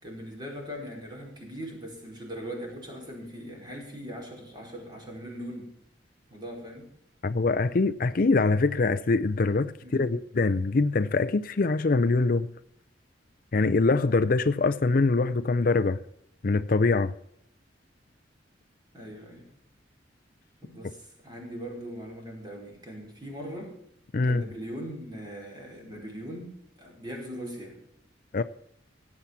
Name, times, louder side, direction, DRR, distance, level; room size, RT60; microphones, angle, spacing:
voice 1, 0.0-5.7 6.3-6.8 9.8-10.2 13.7-13.9 18.9-19.4 20.6-23.8 24.2-27.8, equal, 25° right, 4.9 m, -40 dB
voice 2, 7.2-12.5 13.5-16.0 16.4-17.1 24.1-24.4 28.3-28.4, left 3 dB, 50° left, 0.5 m, -24 dB
17.0 x 8.5 x 5.9 m
head